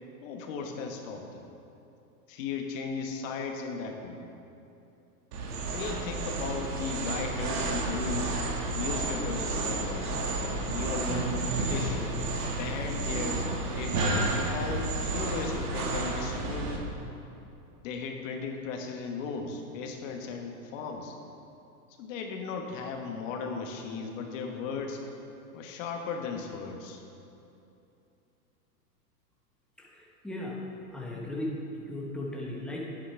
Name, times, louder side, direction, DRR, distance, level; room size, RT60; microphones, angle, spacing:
voice 1, 0.2-1.4 2.3-4.3 5.7-8.4 8.7-10.2 10.7-12.0 12.6-13.4 13.8-16.9 17.8-21.1 22.0-25.1 25.5-27.0, left 5 dB, 50° left, 3 dB, 1.3 m, -36 dB
sound 1, 5.3-16.8, right 2 dB, 65° right, 1.8 m, -31 dB
voice 2, 29.8-30.6 30.9-31.6 31.9-32.8, left 1 dB, ahead, -4 dB, 1.1 m, -36 dB
11.0 x 8.8 x 3.3 m, 2.8 s
hypercardioid pair, 130°, 48 cm